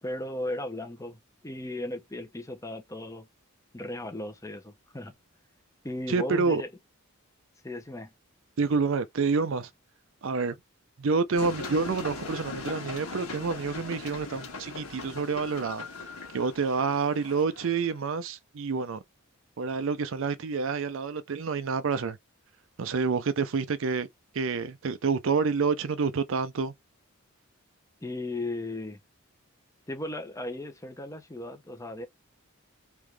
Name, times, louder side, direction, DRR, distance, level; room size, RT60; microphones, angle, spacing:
voice 1, 0.0-3.3 3.7-5.2 5.8-6.7 7.6-8.1 28.0-29.0 29.9-32.1, left 1 dB, 15° left, 0.6 m, -36 dB
voice 2, 6.1-6.6 8.6-9.7 10.2-10.6 11.0-19.0 19.6-22.2 22.8-24.1 24.3-26.7, right 5 dB, 60° right, 0.5 m, -28 dB
sound 1, 11.3-17.9, left 3 dB, 85° left, 1.5 m, -40 dB
3.4 x 3.0 x 3.3 m
head